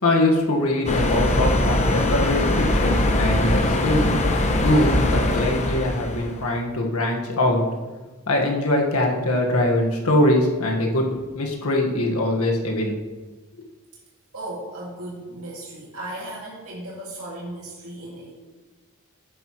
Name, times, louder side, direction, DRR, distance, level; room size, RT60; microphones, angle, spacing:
voice 1, 0.0-4.1 4.6-7.6 8.3-11.1 11.3-13.0, left 1 dB, 85° left, 1 dB, 1.7 m, -22 dB
sound 1, 0.9-6.4, left 1 dB, 35° left, 1.0 m, -21 dB
voice 2, 14.3-18.3, right 1 dB, 90° right, -6 dB, 2.3 m, -36 dB
10.5 x 9.9 x 3.2 m, 1.2 s
head